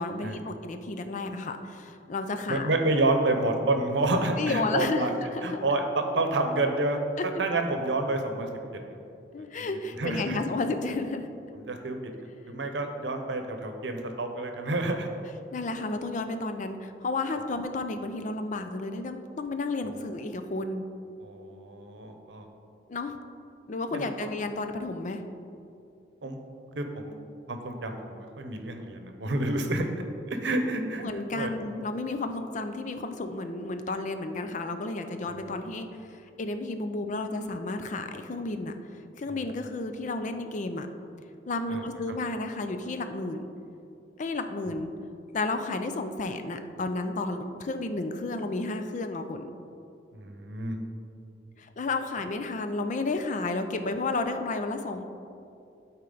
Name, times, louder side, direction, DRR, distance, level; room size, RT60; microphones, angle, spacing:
voice 1, 0.0-2.7 4.4-5.8 7.2-7.3 9.3-11.3 15.5-20.8 22.9-23.1 23.7-25.2 31.0-38.7 39.2-40.9 41.5-43.5 44.2-44.9 45.3-49.5 51.6-55.0, left 3 dB, 45° left, 8 dB, 0.4 m, -32 dB
voice 2, 2.5-5.1 5.4-8.5 8.9-9.0 9.6-9.7 10.0-10.4 11.5-12.1 12.4-15.1 19.8-20.1 21.2-22.5 23.9-24.3 26.2-26.4 26.8-27.1 27.5-29.9 30.3-31.0 31.3-31.5 35.4-35.6 39.3-39.7 41.7-41.8 50.1-50.8, right 2 dB, 70° right, 5 dB, 0.8 m, -29 dB
12.0 x 4.4 x 3.9 m, 2.6 s
head